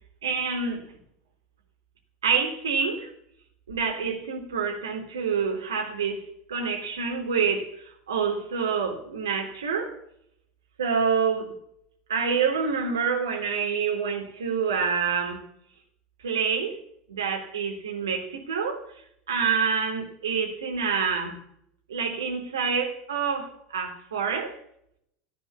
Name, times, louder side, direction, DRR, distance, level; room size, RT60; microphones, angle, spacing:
voice 1, 0.2-0.9 2.2-3.1 3.7-9.9 10.8-11.5 12.1-15.4 16.2-16.8 17.1-18.9 19.3-21.4 21.9-24.6, right 6 dB, 75° right, 3.5 m, -27 dB
15.5 x 10.5 x 7.1 m
figure-of-eight pair, 80°, 2 cm